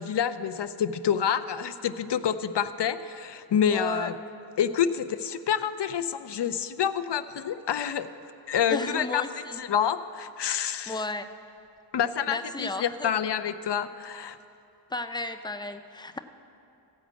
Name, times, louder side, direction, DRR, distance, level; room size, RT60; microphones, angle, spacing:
voice 1, 0.0-4.1 4.6-8.1 8.5-9.2 9.6-11.0 11.9-14.4, left 8 dB, 70° left, 12 dB, 0.5 m, -28 dB
voice 2, 3.7-4.1 8.7-9.6 10.9-11.3 12.3-13.1 14.9-16.2, left 2 dB, 10° left, 8 dB, 0.4 m, -33 dB
15.0 x 5.1 x 8.2 m, 2.6 s
wide cardioid pair, 85°, 45 cm